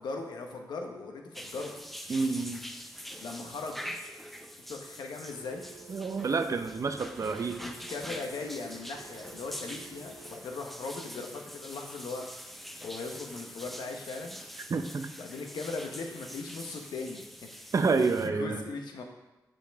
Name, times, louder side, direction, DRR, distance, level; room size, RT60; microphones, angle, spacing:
voice 1, 0.0-1.7 3.2-3.8 4.6-5.6 7.6-12.3 12.8-14.4 15.2-17.7 18.2-19.0, left 3 dB, 90° left, 3 dB, 0.9 m, -39 dB
sound 1, 1.3-18.3, equal, ahead, 0.5 m, -45 dB
voice 2, 2.1-2.6 5.9-7.6 14.7-15.1 17.7-18.6, right 4 dB, 50° right, 8 dB, 0.5 m, -29 dB
Telephone, 5.3-10.5, right 5 dB, 75° right, 1.4 m, -52 dB
7.1 x 5.1 x 3.4 m, 1.0 s
cardioid pair, 75°, 7 cm